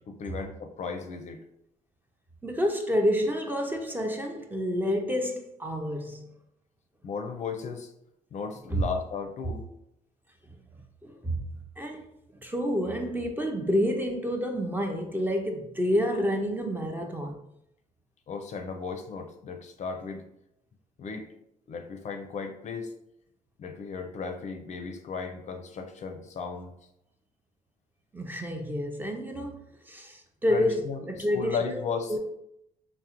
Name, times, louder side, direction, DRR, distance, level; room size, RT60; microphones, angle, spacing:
voice 1, 0.1-1.4 7.0-7.9 8.3-9.7 18.3-20.3 21.0-21.3 21.7-22.9 23.6-26.8 30.5-31.1 31.3-32.2, left 5 dB, 50° left, 0.4 m, -35 dB
voice 2, 2.4-6.3 8.7-8.8 11.0-11.4 11.8-12.0 12.4-17.4 28.1-29.6 29.9-30.8 31.1-31.8 32.1-32.2, equal, 10° right, 0.4 m, -28 dB
3.5 x 2.0 x 2.9 m
cardioid pair, 100°, 16 cm